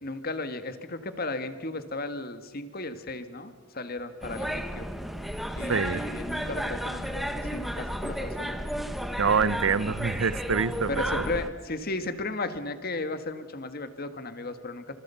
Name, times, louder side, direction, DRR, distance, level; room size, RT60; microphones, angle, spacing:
voice 1, 0.0-4.9 5.6-8.6 10.9-15.0, left 2 dB, 45° left, 1.7 m, -35 dB
sound 1, 4.2-11.5, equal, ahead, 1.2 m, -33 dB
voice 2, 5.7-6.0 9.2-11.2, right 5 dB, 75° right, 0.7 m, -26 dB
27.0 x 25.5 x 5.7 m
head